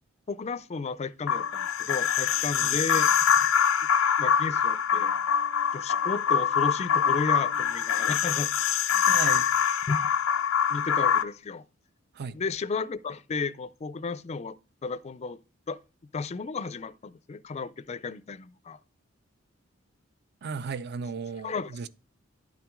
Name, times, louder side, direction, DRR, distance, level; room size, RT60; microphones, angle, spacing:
voice 1, 0.3-3.1 3.8-3.9 4.2-5.1 5.7-8.5 9.9-10.1 10.7-11.6 12.3-14.6 14.8-15.4 15.7-15.8 16.1-18.8 21.4-21.9, left 4 dB, 35° left, 0.4 m, -33 dB
sound 1, 1.3-11.2, left 8 dB, 85° left, 0.5 m, -24 dB
voice 2, 9.1-9.5 12.1-12.4 20.4-21.9, right 5 dB, 55° right, 0.4 m, -35 dB
10.5 x 5.9 x 3.6 m
head